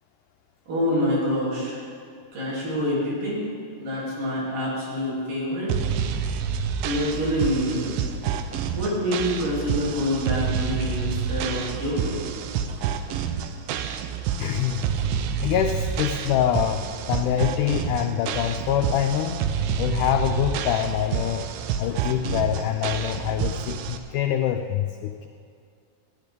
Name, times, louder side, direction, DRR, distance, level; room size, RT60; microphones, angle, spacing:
voice 1, 0.7-1.8 2.3-3.4 3.8-5.7 6.8-7.9 8.7-12.2, left 1 dB, 60° right, -6 dB, 4.7 m, -26 dB
sound 1, 5.7-24.0, right 7 dB, 80° right, 2.3 m, -28 dB
voice 2, 14.4-14.8 15.4-19.4 19.8-21.4 21.8-25.3, left 10 dB, 85° left, 5 dB, 1.8 m, -25 dB
13.5 x 10.5 x 5.3 m, 2.4 s
omnidirectional pair, 4.1 m